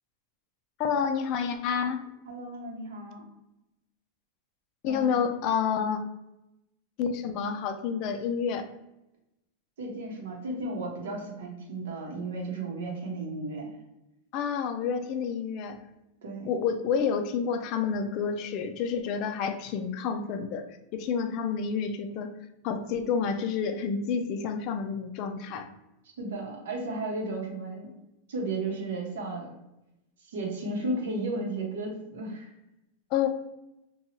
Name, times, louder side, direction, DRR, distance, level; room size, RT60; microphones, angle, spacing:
voice 1, 0.8-2.1 4.8-6.0 7.0-8.7 14.3-15.8 16.5-20.7 20.9-22.3 22.6-25.7 33.1-33.3, left 6 dB, 40° left, 7 dB, 0.3 m, -29 dB
voice 2, 2.3-3.2 4.9-5.3 9.8-13.8 16.2-16.5 26.2-27.9 28.3-29.5 30.2-32.5, right 2 dB, 90° right, 0 dB, 0.9 m, -34 dB
2.8 x 2.2 x 2.8 m, 0.91 s
supercardioid pair, 155°, 0 cm